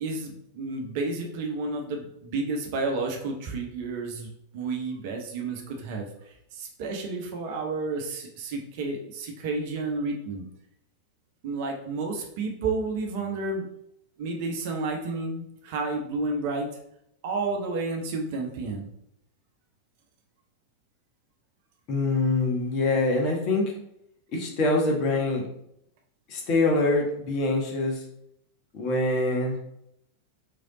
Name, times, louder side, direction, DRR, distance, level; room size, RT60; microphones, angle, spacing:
voice 1, 0.0-10.4 11.4-13.6 14.2-16.7 17.2-18.9, right 3 dB, 50° right, 2 dB, 0.8 m, -31 dB
voice 2, 21.9-23.7 24.3-25.4 26.3-28.0 28.7-29.6, left 2 dB, 40° left, -1 dB, 1.2 m, -24 dB
3.8 x 3.4 x 3.8 m, 0.74 s
figure-of-eight pair, 90°, 0 cm